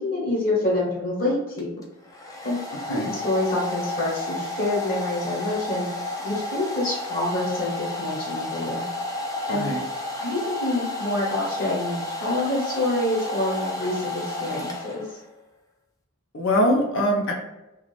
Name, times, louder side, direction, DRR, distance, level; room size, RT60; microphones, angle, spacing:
voice 1, 0.0-1.7 2.4-2.6 2.9-5.9 6.2-8.8 9.5-9.7 10.2-15.0, left 2 dB, 40° left, -5 dB, 1.1 m, -27 dB
Domestic sounds home sounds, 1.6-15.3, left 2 dB, 15° left, 0.4 m, -32 dB
voice 2, 16.3-17.3, equal, 60° left, 1 dB, 0.6 m, -22 dB
2.5 x 2.3 x 3.1 m, 0.97 s
head